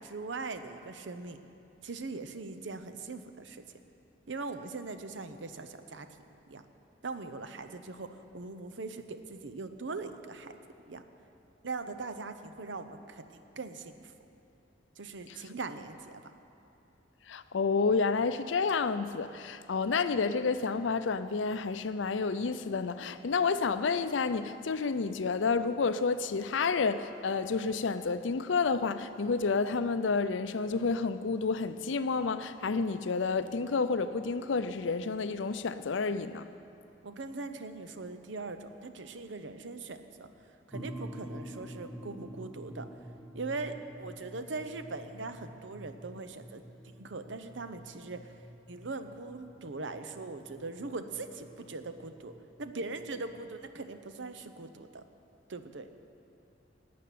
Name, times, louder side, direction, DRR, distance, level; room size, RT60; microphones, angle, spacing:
voice 1, 0.0-1.4 1.8-3.6 4.3-6.1 6.5-6.6 7.0-10.5 10.9-11.0 11.6-14.1 15.0-16.3 37.0-40.3 40.7-42.9 43.3-48.3 48.7-55.0 55.5-55.9, right 3 dB, 70° right, 9 dB, 0.8 m, -41 dB
voice 2, 17.3-36.5, left 4 dB, 75° left, 12 dB, 0.5 m, -30 dB
sound 1, 40.7-53.7, equal, ahead, 0.9 m, -48 dB
12.5 x 8.6 x 9.3 m, 2.8 s
head